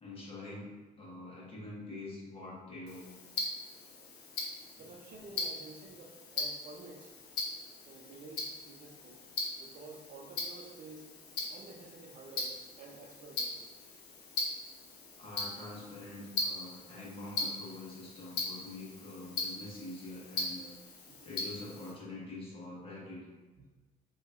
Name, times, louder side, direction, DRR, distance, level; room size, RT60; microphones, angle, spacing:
voice 1, 0.0-3.1 4.8-4.9 5.3-5.4 15.2-20.7 21.2-23.2, left 2 dB, 35° left, -6 dB, 1.4 m, -45 dB
Tick-tock, 2.9-21.9, left 3 dB, 80° left, 0.9 m, -40 dB
voice 2, 4.8-7.2 7.9-9.2 9.6-11.1 11.4-13.7 21.1-21.3 23.6-23.7, right 3 dB, 50° right, 1 dB, 0.6 m, -51 dB
5.0 x 2.9 x 2.5 m, 1.3 s
cardioid pair, 110°, 17 cm